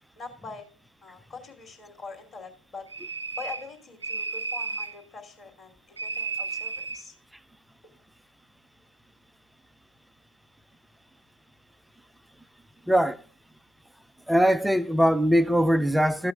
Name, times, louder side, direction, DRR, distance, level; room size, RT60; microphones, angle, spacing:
voice 1, 0.2-0.6 1.0-2.9 3.3-7.1, left 4 dB, 25° left, 2.7 m, -43 dB
sound 1, 2.9-3.7 4.0-5.0 6.0-7.0, right 4 dB, 75° right, 0.5 m, -33 dB
voice 2, 12.9-13.2 14.3-16.3, equal, ahead, 0.3 m, -21 dB
14.0 x 8.4 x 2.3 m
figure-of-eight pair, 90°, 0 cm